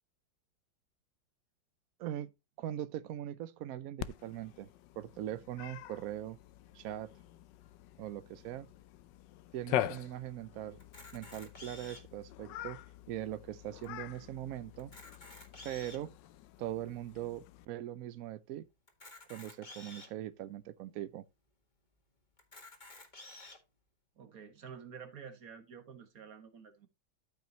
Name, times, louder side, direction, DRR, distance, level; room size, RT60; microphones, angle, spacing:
voice 1, 2.0-2.3 2.6-4.7 5.0-6.4 6.7-7.1 8.0-8.7 9.5-10.8 11.1-12.8 13.1-15.0 15.6-16.2 16.6-18.7 19.3-21.2, right 12 dB, 75° right, 0.8 m, -41 dB
Cat, 4.0-17.7, left 13 dB, 75° left, 1.2 m, -44 dB
Camera, 10.8-12.2 12.8-12.9 13.2-13.3 13.8-13.9 14.7-16.1 16.7-16.8 18.9-20.1 20.8-20.9 21.2-21.3 22.4-23.6, left 2 dB, 25° left, 1.9 m, -51 dB
voice 2, 24.2-26.9, right 7 dB, 50° right, 1.9 m, -50 dB
13.0 x 5.7 x 2.9 m
omnidirectional pair, 2.1 m